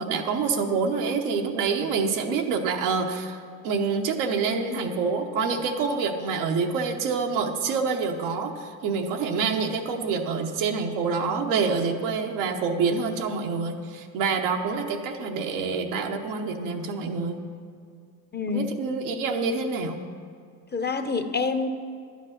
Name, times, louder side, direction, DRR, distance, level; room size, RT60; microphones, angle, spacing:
voice 1, 0.0-3.4 3.6-17.4 18.5-20.0, right 5 dB, 85° right, 3 dB, 1.1 m, -27 dB
voice 2, 18.3-18.7 20.7-21.7, left 4 dB, 20° left, 8 dB, 0.8 m, -26 dB
11.5 x 7.5 x 5.8 m, 2.3 s
supercardioid pair, 75°, 45 cm